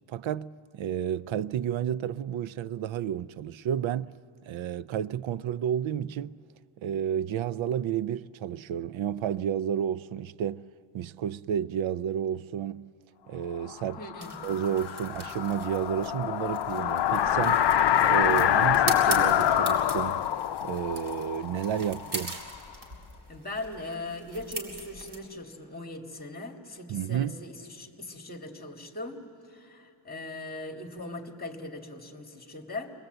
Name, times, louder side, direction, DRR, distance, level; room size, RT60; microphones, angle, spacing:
voice 1, 0.1-4.1 4.5-6.4 6.8-10.6 10.9-12.8 13.3-14.0 14.4-17.6 18.0-20.2 20.6-22.3 26.9-27.4, right 9 dB, 70° right, 0.5 m, -31 dB
sound 1, 13.7-22.5, left 10 dB, 60° left, 0.6 m, -26 dB
voice 2, 14.0-14.3 23.3-29.2 29.5-32.9, left 2 dB, 20° left, 1.9 m, -39 dB
sound 2, 14.2-25.2, right 2 dB, 50° right, 3.4 m, -41 dB
26.0 x 20.5 x 7.9 m
wide cardioid pair, 115°, 49 cm